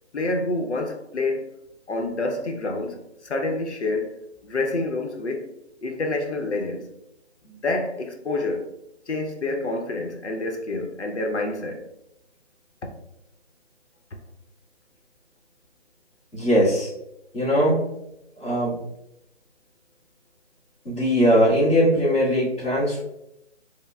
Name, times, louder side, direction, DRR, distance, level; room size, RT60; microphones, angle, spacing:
voice 1, 0.1-1.5 1.9-4.2 4.4-5.5 5.8-6.9 7.4-8.7 9.1-11.8, left 2 dB, 75° left, 0.7 m, -28 dB
voice 2, 16.3-16.9 17.3-17.8 18.4-18.8 20.8-23.0, equal, 10° left, 0.8 m, -20 dB
5.2 x 2.1 x 2.3 m
figure-of-eight pair, 165°, 34 cm